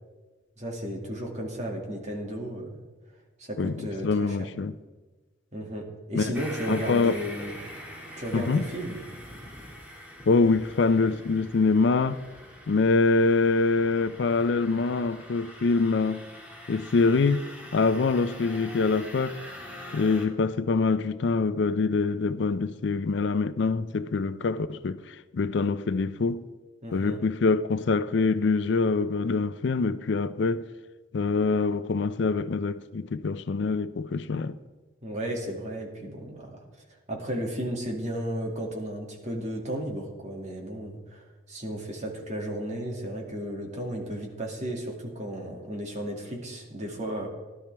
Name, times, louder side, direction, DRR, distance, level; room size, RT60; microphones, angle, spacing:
voice 1, 0.6-2.8 3.4-4.5 5.5-7.5 8.2-9.0 26.8-27.2 35.0-36.5 37.1-47.3, equal, 40° right, 2.2 m, -34 dB
voice 2, 3.6-4.7 6.1-6.3 6.7-7.1 8.3-8.6 10.3-12.2 12.7-16.2 16.7-17.5 17.7-19.4 19.9-26.4 26.9-30.7 31.1-34.6, left 4 dB, 65° left, 0.4 m, -25 dB
sound 1, 6.3-20.3, equal, 10° right, 2.1 m, -44 dB
16.5 x 11.5 x 3.4 m
head